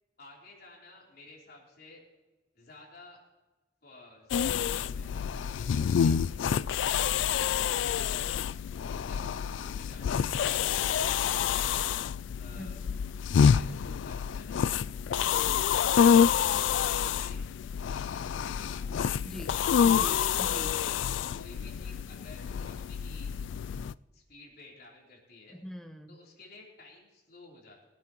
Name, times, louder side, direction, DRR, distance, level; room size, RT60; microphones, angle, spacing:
voice 1, 0.2-2.0 2.5-3.2 3.8-7.1 7.5-8.4 8.9-11.9 12.4-12.8 13.2-15.4 16.1-17.5 17.8-20.2 21.0-23.3 24.1-25.6 26.1-27.8, left 2 dB, 60° left, -3 dB, 3.5 m, -53 dB
sound 1, 4.3-23.9, left 8 dB, 85° left, 0.3 m, -27 dB
voice 2, 12.6-13.0 19.2-20.9 25.5-26.2, equal, ahead, 6 dB, 0.7 m, -44 dB
22.5 x 8.8 x 3.0 m, 1.2 s
head